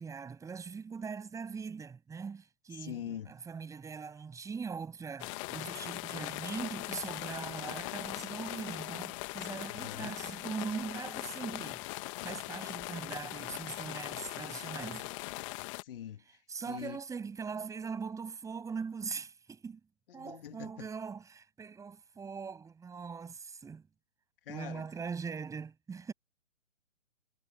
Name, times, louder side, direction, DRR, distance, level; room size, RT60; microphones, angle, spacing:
voice 1, 0.0-15.1 16.2-19.8 20.1-23.9 24.5-26.1, right 5 dB, 10° right, 7.6 m, -41 dB
voice 2, 2.8-3.3 9.6-10.1 15.8-16.2 16.7-17.0 20.2-20.7 24.5-24.8, left 10 dB, 45° left, 2.4 m, -43 dB
sound 1, 5.2-15.8, left 26 dB, 25° left, 1.8 m, -40 dB
figure-of-eight pair, 135°, 37 cm